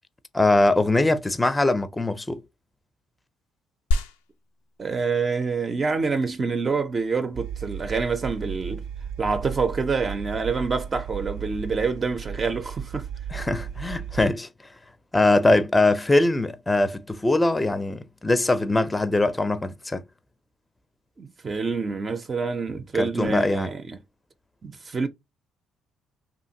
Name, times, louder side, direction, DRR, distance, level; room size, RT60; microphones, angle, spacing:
voice 1, 0.3-2.4 13.3-14.5 15.1-20.0 22.9-23.7, left 2 dB, 15° left, 0.4 m, -22 dB
sound 1, 3.9-13.9, left 3 dB, 90° left, 0.3 m, -36 dB
voice 2, 4.8-8.8 9.2-13.1 21.2-24.0 24.6-25.1, right 4 dB, 40° right, 0.5 m, -27 dB
sound 2, 7.3-14.3, right 7 dB, 80° right, 0.6 m, -35 dB
2.7 x 2.5 x 2.7 m
hypercardioid pair, 55°, 0 cm